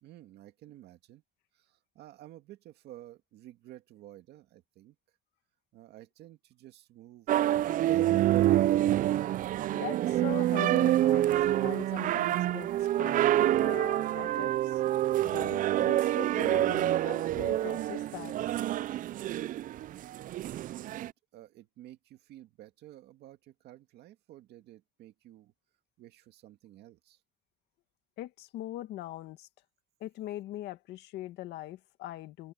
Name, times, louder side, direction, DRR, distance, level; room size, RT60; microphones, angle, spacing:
voice 1, 0.0-1.2 1.5-5.0 5.7-7.6 7.9-8.4 19.9-20.1 20.4-25.5 26.0-27.2, right 14 dB, 75° right, 2.0 m, -52 dB
sound 1, 7.3-21.1, right 13 dB, 55° right, 0.4 m, -27 dB
voice 2, 9.7-14.8 15.3-18.4 28.2-29.5 30.0-32.5, left 15 dB, 80° left, 1.9 m, -42 dB
open air
cardioid pair, 110°, 17 cm